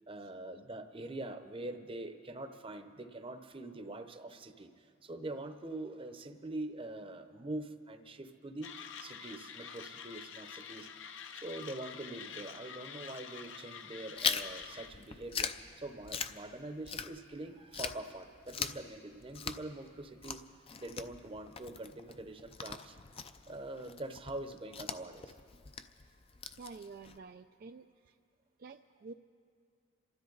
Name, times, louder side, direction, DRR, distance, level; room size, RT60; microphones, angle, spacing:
voice 1, 0.1-8.7 9.0-10.9 11.3-20.4 20.8-23.0 23.5-25.3, right 2 dB, 25° right, 8 dB, 0.8 m, -44 dB
Mechanisms, 8.6-14.9, left 7 dB, 65° left, 0.8 m, -47 dB
Chewing mastication, 14.2-17.4 17.7-27.2, left 6 dB, 30° left, 0.5 m, -41 dB
voice 2, 26.6-28.2 28.6-29.1, right 4 dB, 45° right, 6 dB, 0.3 m, -49 dB
27.5 x 13.0 x 4.0 m, 2.3 s
head